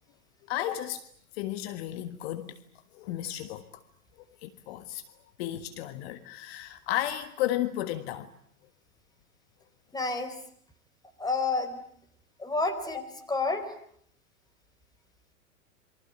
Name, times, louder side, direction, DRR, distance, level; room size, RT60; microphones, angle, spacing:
voice 1, 0.5-1.0 1.3-2.6 2.9-3.8 4.4-5.0 5.4-8.3, left 13 dB, 45° left, 1.6 m, -33 dB
voice 2, 9.9-10.4 11.2-11.8 12.4-13.8, left 3 dB, 10° left, 4.2 m, -30 dB
27.5 x 23.5 x 8.6 m
figure-of-eight pair, 100°, 42 cm